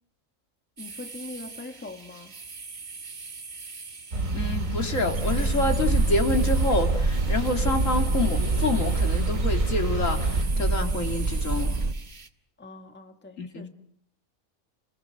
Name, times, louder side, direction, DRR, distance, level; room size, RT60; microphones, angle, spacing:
voice 1, 0.8-2.3 12.6-13.7, left 2 dB, 10° left, 1.5 m, -42 dB
sound 1, 0.8-12.3, right 4 dB, 50° right, 1.9 m, -42 dB
sound 2, 4.1-10.4, right 3 dB, 70° right, 3.4 m, -29 dB
voice 2, 4.3-11.8 13.4-13.7, left 2 dB, 70° left, 3.0 m, -28 dB
sound 3, 5.1-11.9, right 3 dB, 30° right, 1.4 m, -27 dB
30.0 x 21.5 x 7.8 m
omnidirectional pair, 1.4 m